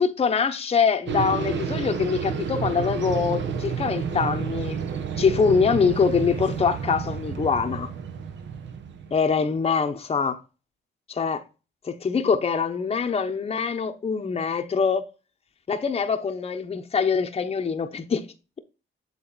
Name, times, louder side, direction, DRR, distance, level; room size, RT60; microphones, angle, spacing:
voice 1, 0.0-4.8 5.2-7.9 9.1-10.4 11.1-11.4 11.8-15.0 15.7-18.2, left 5 dB, 30° left, 0.9 m, -24 dB
sound 1, 1.1-9.4, right 6 dB, 65° right, 1.0 m, -30 dB
7.8 x 3.7 x 4.0 m
cardioid pair, 90°, 20 cm